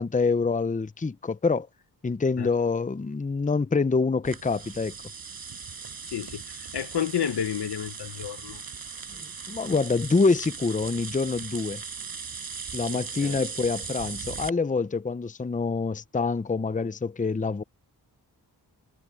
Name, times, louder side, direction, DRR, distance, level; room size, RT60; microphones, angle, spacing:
voice 1, 0.0-1.7 2.0-4.9 9.5-11.8 12.7-17.6, left 4 dB, 20° left, 0.7 m, -26 dB
sound 1, 4.2-14.5, right 5 dB, 60° right, 6.4 m, -38 dB
voice 2, 6.1-8.6 12.9-13.4, left 9 dB, 75° left, 1.4 m, -31 dB
cardioid pair, 65°, 40 cm